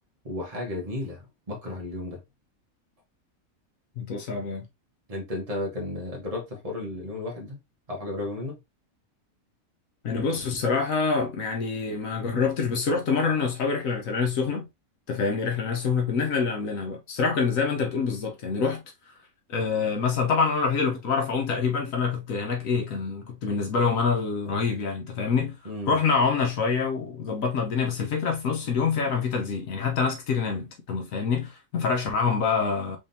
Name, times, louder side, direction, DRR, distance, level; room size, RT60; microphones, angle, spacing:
voice 1, 0.2-2.2 5.1-7.6 7.9-8.6 25.6-26.0, left 1 dB, 25° right, 1.4 m, -33 dB
voice 2, 4.0-4.7 10.0-14.7 15.1-18.8 19.5-25.6 25.9-33.0, left 5 dB, 75° left, 1.3 m, -26 dB
3.7 x 3.6 x 2.7 m
omnidirectional pair, 1.4 m